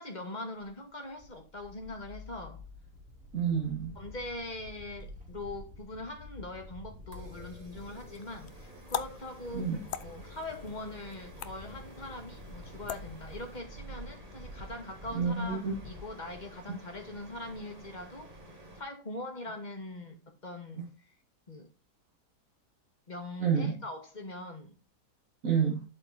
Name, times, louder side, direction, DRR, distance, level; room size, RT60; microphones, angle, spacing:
voice 1, 0.0-2.6 4.0-9.7 10.0-18.3 18.8-21.1 21.5-21.7 23.1-24.8, left 2 dB, 30° left, 1.8 m, -42 dB
sound 1, 0.6-16.6, left 1 dB, 5° right, 2.3 m, -49 dB
voice 2, 3.3-4.0 9.5-9.8 15.1-15.7 20.7-20.8 23.4-23.8 25.4-25.8, right 6 dB, 55° right, 1.7 m, -29 dB
sound 2, 7.1-18.8, right 1 dB, 25° right, 1.5 m, -52 dB
sound 3, 7.8-13.6, left 10 dB, 65° left, 0.6 m, -43 dB
11.5 x 4.4 x 4.0 m
omnidirectional pair, 1.7 m